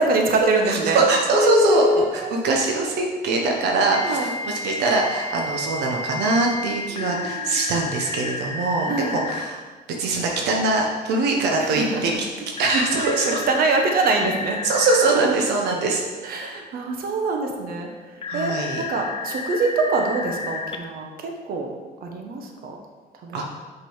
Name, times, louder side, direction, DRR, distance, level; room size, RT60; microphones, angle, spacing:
voice 1, 0.0-1.0 1.7-2.3 4.0-4.3 6.9-7.5 8.9-9.1 11.6-12.2 12.9-14.6 16.2-17.9 18.3-21.7 22.0-22.8 23.2-23.5, right 3 dB, 60° right, 2 dB, 1.2 m, -25 dB
voice 2, 0.7-9.6 10.0-12.1 12.6-13.4 14.6-16.0 18.3-18.8 23.3-23.6, right 3 dB, 80° right, 1 dB, 1.1 m, -22 dB
Telephone, 1.3-2.1 3.9-9.5 12.6-15.1 18.2-20.8, left 4 dB, 30° left, 0.7 m, -29 dB
6.2 x 5.4 x 5.6 m, 1.4 s
cardioid pair, 110°, 17 cm